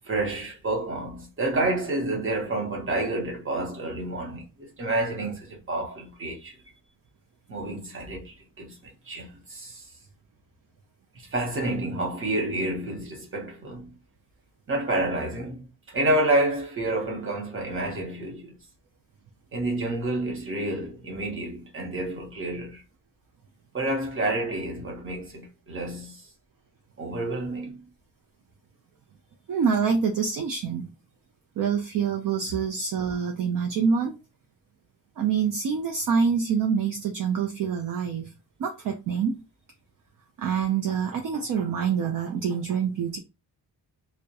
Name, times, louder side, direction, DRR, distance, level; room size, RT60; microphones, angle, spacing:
voice 1, 0.1-6.6 7.5-9.9 11.2-13.9 14.7-18.5 19.5-22.8 23.7-26.2 27.0-27.9, right 2 dB, 35° right, 0.8 m, -29 dB
voice 2, 29.5-30.9 31.6-34.2 35.2-38.3 38.6-39.4 40.4-43.2, right 6 dB, 55° right, 0.4 m, -26 dB
2.3 x 2.1 x 2.7 m
wide cardioid pair, 175°, 39 cm